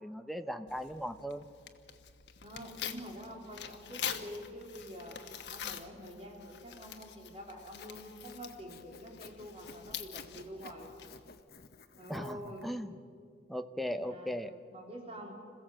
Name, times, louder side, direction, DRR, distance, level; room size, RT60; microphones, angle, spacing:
voice 1, 0.0-1.5 12.1-13.0 13.5-14.5, equal, ahead, 8 dB, 0.8 m, -38 dB
Tearing, 0.7-11.4, left 8 dB, 80° left, 1.2 m, -45 dB
voice 2, 2.4-5.2 5.5-10.9 12.0-12.7 14.0-14.3 14.7-15.3, equal, 35° right, 0 dB, 3.7 m, -46 dB
Sawing, 7.6-12.7, left 5 dB, 60° left, 0.9 m, -54 dB
26.5 x 16.0 x 7.6 m, 2.2 s
head